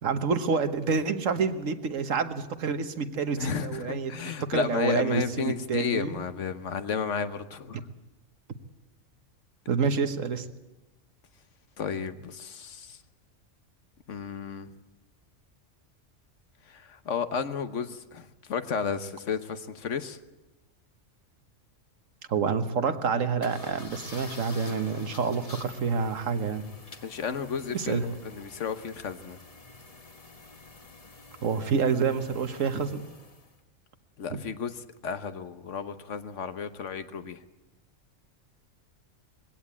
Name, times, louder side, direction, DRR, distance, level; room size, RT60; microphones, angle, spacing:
voice 1, 0.0-4.1 4.5-6.2 9.7-10.5 22.3-26.6 27.7-28.0 31.4-33.0 34.3-34.4, right 5 dB, 85° right, 9 dB, 1.6 m, -28 dB
voice 2, 3.4-7.8 11.8-13.0 14.1-14.7 16.7-20.2 27.0-29.4 34.2-34.7 35.0-37.4, left 6 dB, 70° left, 10 dB, 1.4 m, -33 dB
sound 1, 23.4-33.6, left 3 dB, 30° left, 1.2 m, -48 dB
21.0 x 16.5 x 8.5 m, 1.1 s
omnidirectional pair, 1.3 m